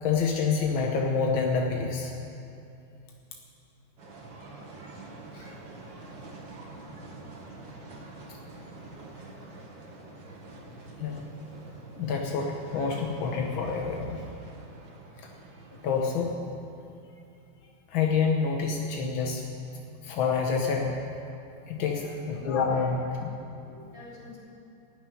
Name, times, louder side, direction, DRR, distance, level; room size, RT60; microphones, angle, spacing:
voice 1, 0.0-2.1 5.3-5.4 11.0-11.3 11.9-14.2 15.2-15.3 15.8-16.4 17.9-19.4 20.0-21.0 21.7-23.3, left 5 dB, 85° left, 0 dB, 1.8 m, -27 dB
sound 1, 4.0-16.1, right 2 dB, 70° right, 2.3 m, -46 dB
voice 2, 21.8-22.4 22.7-22.9 23.4-24.4, left 2 dB, 40° left, -6 dB, 3.8 m, -50 dB
16.0 x 6.8 x 9.8 m, 2.7 s
omnidirectional pair, 2.1 m